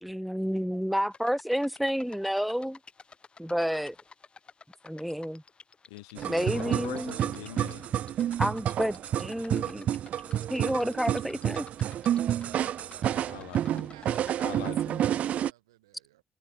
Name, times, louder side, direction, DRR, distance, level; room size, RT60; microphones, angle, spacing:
voice 1, 0.0-2.8 3.4-4.0 4.8-5.4 6.2-7.2 8.4-9.9 10.2-11.7, equal, ahead, 0.6 m, -30 dB
sound 1, 1.1-14.7, left 5 dB, 45° left, 3.8 m, -53 dB
voice 2, 5.9-7.8 13.1-13.9 14.4-15.0, left 22 dB, 85° left, 0.5 m, -43 dB
sound 2, 6.2-15.5, right 11 dB, 65° right, 0.9 m, -29 dB
voice 3, 13.3-16.2, right 16 dB, 90° right, 2.4 m, -54 dB
hypercardioid pair, 40°, 2 cm